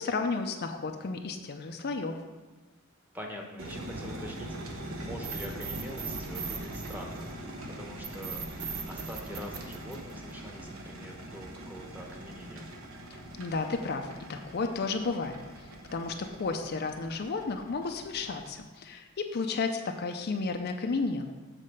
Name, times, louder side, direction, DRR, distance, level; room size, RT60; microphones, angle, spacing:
voice 1, 0.0-2.2 13.4-15.3 15.9-21.3, left 4 dB, 50° left, 5 dB, 0.5 m, -32 dB
voice 2, 3.1-7.3 7.7-12.7, equal, 10° right, 1 dB, 1.0 m, -44 dB
sound 1, 3.6-18.5, right 1 dB, 70° right, 1.1 m, -43 dB
sound 2, 5.2-7.5 8.0-10.5, right 5 dB, 55° right, 0.9 m, -38 dB
7.5 x 4.3 x 6.5 m, 1.2 s
head